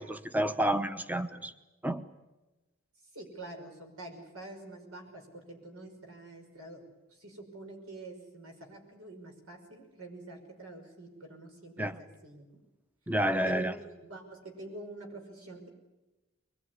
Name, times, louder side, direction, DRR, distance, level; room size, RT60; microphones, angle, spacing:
voice 1, 0.0-1.5 1.8-2.0 11.8-12.0 13.1-13.7, right 1 dB, 10° right, 0.8 m, -30 dB
voice 2, 3.1-12.5 13.4-15.7, right 2 dB, 85° right, 5.7 m, -47 dB
23.5 x 21.5 x 9.7 m
head